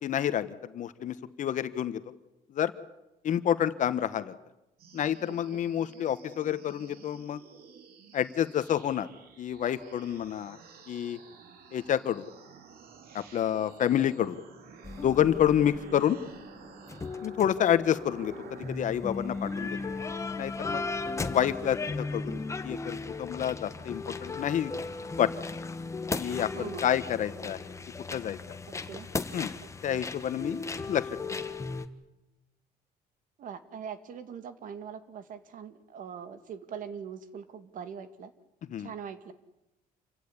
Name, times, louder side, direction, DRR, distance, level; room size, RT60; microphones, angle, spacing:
voice 1, 0.0-2.0 2.5-2.7 3.2-4.3 4.9-7.4 8.1-9.1 9.4-10.6 10.9-11.2 11.7-12.2 13.1-14.4 15.0-16.2 17.2-19.8 20.4-20.9 21.3-24.7 25.2-25.3 26.2-27.7 28.1-28.6 29.3-29.5 29.8-31.4 38.7-38.9, left 10 dB, 55° left, 13 dB, 1.4 m, -29 dB
sound 1, 4.8-20.3, right 6 dB, 75° right, 3.4 m, -52 dB
voice 2, 5.3-5.6 15.9-16.0 26.5-26.9 28.7-29.1 29.6-30.0 33.4-38.3 38.8-39.3, right 7 dB, 60° right, 12 dB, 2.2 m, -42 dB
sound 2, 14.8-31.9, left 3 dB, 20° left, 1.4 m, -36 dB
27.5 x 16.0 x 9.9 m, 0.92 s
cardioid pair, 130°, 16 cm